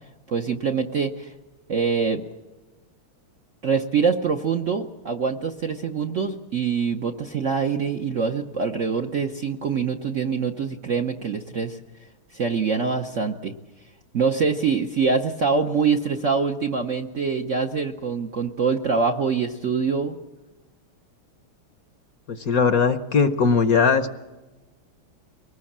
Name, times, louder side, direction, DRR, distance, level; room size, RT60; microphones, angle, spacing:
voice 1, 0.3-1.3 1.7-2.2 3.6-11.8 12.3-13.5 14.1-20.2, right 5 dB, 55° right, 4 dB, 0.9 m, -24 dB
voice 2, 22.3-24.2, left 5 dB, 55° left, 9 dB, 1.1 m, -20 dB
23.5 x 19.5 x 7.3 m, 1.2 s
omnidirectional pair, 2.3 m